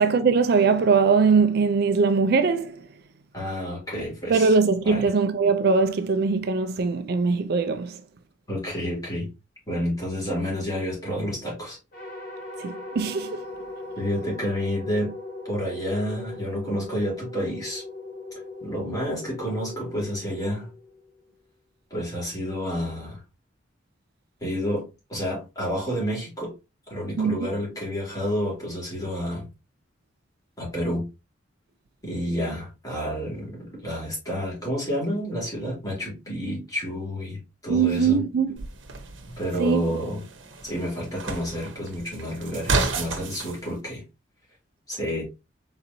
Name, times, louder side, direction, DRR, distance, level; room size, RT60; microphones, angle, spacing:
voice 1, 0.0-2.9 4.3-8.0 12.6-13.5 27.2-27.4 37.7-38.7 39.6-39.8, right 5 dB, 55° right, 0.4 m, -21 dB
voice 2, 3.3-4.5 4.8-5.1 8.5-9.3 9.7-11.8 14.0-15.1 15.4-17.8 18.6-20.7 21.9-23.2 24.4-26.5 26.9-29.5 30.6-31.1 32.0-38.2 39.4-40.2 40.6-44.0 44.9-45.2, equal, 20° left, 2.7 m, -29 dB
sound 1, 11.9-21.2, left 2 dB, 50° left, 1.9 m, -39 dB
sound 2, 38.6-43.6, right 3 dB, 80° right, 0.9 m, -31 dB
4.4 x 3.9 x 2.7 m
head